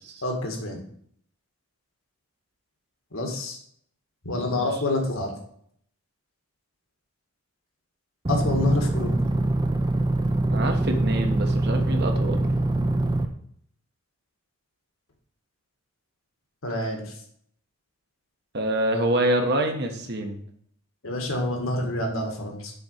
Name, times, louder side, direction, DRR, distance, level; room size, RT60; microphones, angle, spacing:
voice 1, 0.2-0.8 3.1-3.6 4.2-5.4 8.3-9.3 16.6-17.2 21.0-22.7, left 2 dB, 70° left, 2 dB, 1.9 m, -28 dB
sound 1, 8.2-13.2, right 2 dB, 20° right, 0.6 m, -24 dB
voice 2, 10.5-12.4 16.8-16.9 18.5-20.4, right 1 dB, 50° right, 4 dB, 1.2 m, -26 dB
7.0 x 4.3 x 6.5 m, 0.64 s
head